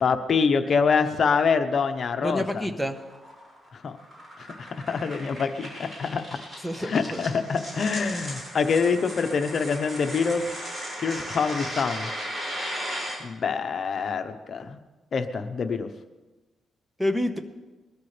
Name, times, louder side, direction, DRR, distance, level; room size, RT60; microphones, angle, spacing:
voice 1, 0.0-2.4 3.8-4.0 4.4-6.2 6.8-10.5 11.0-12.1 13.2-14.8 15.1-15.9, left 5 dB, 50° left, 8 dB, 1.0 m, -25 dB
voice 2, 2.2-3.0 6.6-7.2 17.0-17.4, left 1 dB, 5° right, 6 dB, 1.3 m, -28 dB
sound 1, 2.7-13.2, equal, 30° right, 6.0 m, -37 dB
21.5 x 13.0 x 3.4 m, 1.2 s
cardioid pair, 110°, 0 cm